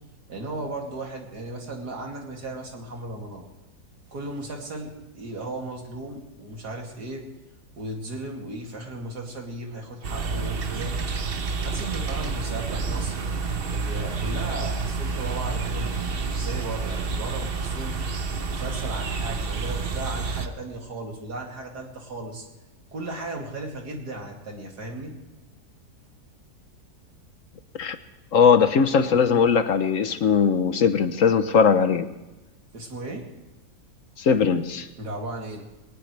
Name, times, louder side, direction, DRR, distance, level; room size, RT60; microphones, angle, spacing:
voice 1, 0.3-3.4 4.1-7.3 7.8-10.9 11.6-13.2 13.8-17.9 18.5-22.4 22.9-25.1 32.7-33.3 35.0-35.6, right 2 dB, 90° right, 1 dB, 3.2 m, -36 dB
sound 1, 10.0-20.5, right 4 dB, 40° right, 1.0 m, -29 dB
voice 2, 28.3-32.1 34.2-34.9, left 6 dB, 60° left, 10 dB, 1.2 m, -19 dB
21.5 x 18.5 x 3.3 m, 1.0 s
omnidirectional pair, 1.7 m